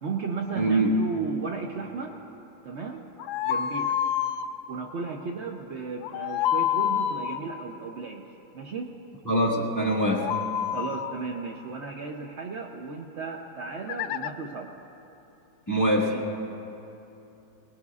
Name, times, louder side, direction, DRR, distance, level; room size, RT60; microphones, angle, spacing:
voice 1, 0.0-2.2 2.6-3.1 3.4-4.0 4.7-8.9 10.7-14.7 16.1-16.2, right 4 dB, 80° right, 2 dB, 0.6 m, -35 dB
voice 2, 0.5-0.9 9.2-10.3 15.7-16.2, right 1 dB, 10° left, -4 dB, 1.4 m, -23 dB
sound 1, 3.2-4.5 6.0-7.4 9.9-11.2 13.9-14.3, left 10 dB, 85° left, 1.4 m, -28 dB
21.5 x 20.0 x 2.4 m, 2.9 s
omnidirectional pair, 2.1 m